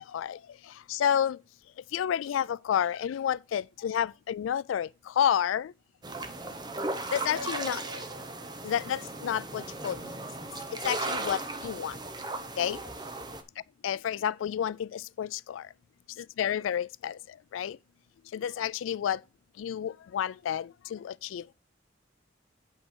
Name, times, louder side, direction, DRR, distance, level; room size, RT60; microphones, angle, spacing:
voice 1, 0.0-1.4 1.9-5.7 7.1-7.8 8.6-10.2 10.7-12.0 12.6-12.8 13.8-15.7 16.2-17.8 18.3-19.2 19.6-21.5, left 9 dB, 90° left, 0.3 m, -30 dB
sound 1, 6.0-13.4, right 2 dB, 20° right, 0.9 m, -36 dB
Piano, 7.4-9.3, left 1 dB, 70° right, 1.6 m, -47 dB
7.8 x 5.6 x 4.5 m
head